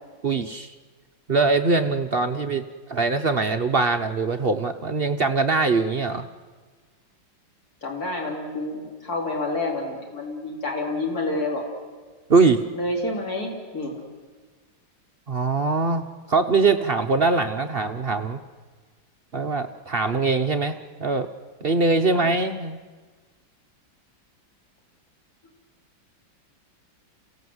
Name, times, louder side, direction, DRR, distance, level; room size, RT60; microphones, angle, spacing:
voice 1, 0.2-0.7 1.3-2.6 2.9-6.3 12.3-12.6 15.3-18.4 19.3-21.3 21.6-22.8, right 4 dB, 60° right, 7 dB, 0.6 m, -22 dB
voice 2, 7.8-11.6 12.7-13.9 22.1-22.3, left 2 dB, 50° left, 0 dB, 4.2 m, -28 dB
28.0 x 16.5 x 7.9 m, 1.4 s
omnidirectional pair, 2.1 m